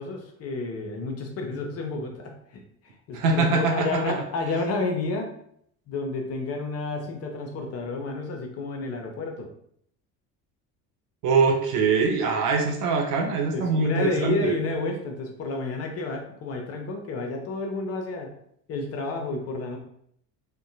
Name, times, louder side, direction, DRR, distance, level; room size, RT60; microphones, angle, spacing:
voice 1, 0.0-2.6 3.1-5.3 5.9-9.5 13.5-18.3 18.7-19.8, left 3 dB, 30° left, 3 dB, 0.6 m, -30 dB
voice 2, 3.1-4.1 11.2-14.5, right 4 dB, 40° right, 3 dB, 0.5 m, -23 dB
3.5 x 2.2 x 2.7 m, 0.68 s
figure-of-eight pair, 65°, 48 cm